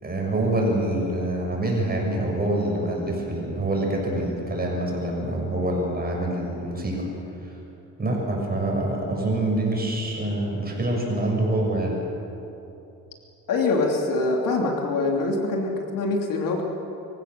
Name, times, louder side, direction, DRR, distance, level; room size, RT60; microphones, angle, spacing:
voice 1, 0.0-7.1 7.4-7.5 8.0-12.0, right 1 dB, 25° right, -1 dB, 6.7 m, -26 dB
voice 2, 13.5-16.6, left 3 dB, 65° left, 1 dB, 3.0 m, -24 dB
24.5 x 16.0 x 6.9 m, 2.9 s
cardioid pair, 85°, 36 cm